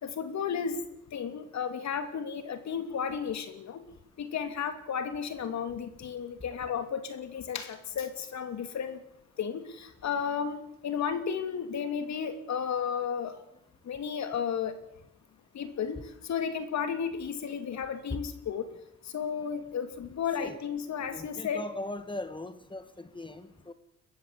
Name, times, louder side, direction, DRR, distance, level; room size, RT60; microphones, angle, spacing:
voice 1, 0.0-0.8 1.1-3.8 4.2-9.0 9.4-13.3 13.8-14.8 15.5-18.7 19.0-21.6, left 7 dB, 65° left, 9 dB, 3.0 m, -33 dB
voice 2, 21.1-23.7, left 2 dB, 15° left, 12 dB, 1.7 m, -39 dB
22.0 x 15.0 x 8.3 m, 0.78 s
cardioid pair, 90°, 30 cm